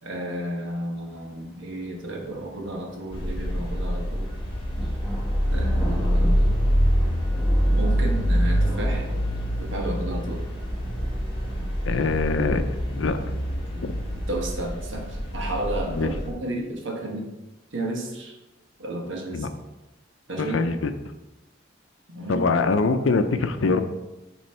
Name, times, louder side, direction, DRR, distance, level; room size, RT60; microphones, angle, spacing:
voice 1, 0.0-4.3 5.5-6.5 7.7-9.1 9.6-10.4 13.7-13.8 14.3-17.3 17.7-18.3 18.8-19.5 20.3-20.7 22.1-22.4, right 1 dB, 75° right, 0 dB, 1.3 m, -32 dB
sound 1, 1.1-14.3, right 1 dB, ahead, 1.2 m, -41 dB
sound 2, 3.1-16.3, equal, 30° left, 1.5 m, -25 dB
voice 2, 11.9-12.6 12.9-13.2 13.8-13.9 15.9-16.1 19.3-19.5 20.4-20.9 22.3-23.8, left 4 dB, 90° left, 9 dB, 0.5 m, -23 dB
7.6 x 3.1 x 4.3 m, 1.0 s
head